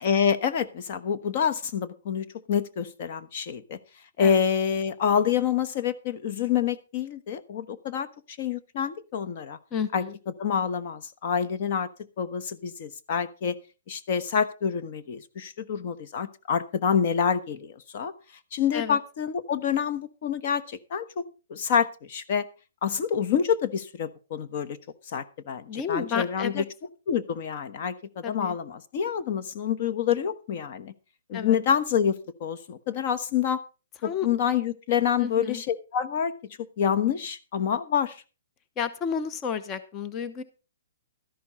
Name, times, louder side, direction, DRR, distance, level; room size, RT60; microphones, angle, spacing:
voice 1, 0.0-3.8 4.2-9.6 9.9-10.0 10.4-11.9 12.2-13.5 13.9-18.1 18.5-21.2 21.5-22.4 22.8-24.8 25.1-26.6 27.1-30.9 31.3-33.6 34.0-38.2, left 7 dB, 40° left, 10 dB, 1.2 m, -27 dB
voice 2, 9.7-10.2 18.7-19.0 25.7-26.6 28.2-28.6 31.3-31.6 34.0-34.3 35.2-35.6 38.8-40.4, left 7 dB, 20° left, 11 dB, 0.8 m, -31 dB
13.0 x 11.0 x 4.3 m, 0.33 s
hypercardioid pair, 165°, 0 cm